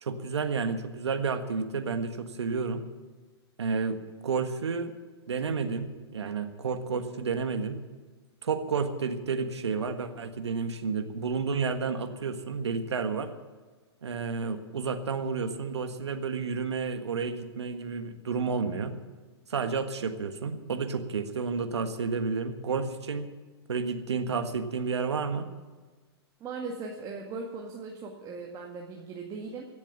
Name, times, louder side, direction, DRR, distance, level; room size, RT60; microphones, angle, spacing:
voice 1, 0.0-2.9 3.6-4.0 4.2-4.9 5.3-7.8 8.4-13.3 14.0-19.0 19.5-23.3 23.7-25.5, right 5 dB, 80° right, 8 dB, 1.5 m, -31 dB
voice 2, 26.4-29.7, right 4 dB, 25° right, 0 dB, 2.0 m, -38 dB
16.5 x 7.4 x 9.8 m, 1.4 s
hypercardioid pair, 120°, 14 cm